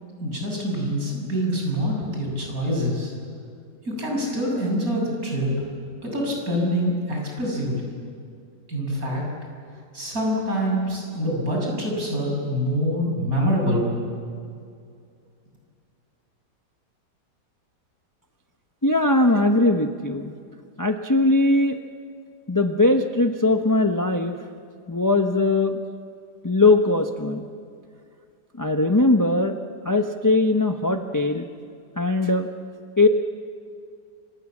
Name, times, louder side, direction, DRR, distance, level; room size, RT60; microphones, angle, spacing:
voice 1, 0.2-3.1 3.9-5.5 6.0-7.9 8.7-9.2 9.9-14.0, equal, 55° right, -1 dB, 7.5 m, -25 dB
voice 2, 18.8-20.3 20.8-21.8 22.5-24.4 24.9-25.8 26.4-27.5 28.6-29.5 29.8-31.5 32.0-32.5 33.0-33.1, left 2 dB, 15° left, 5 dB, 0.7 m, -20 dB
29.5 x 26.5 x 7.4 m, 2.4 s
omnidirectional pair, 1.9 m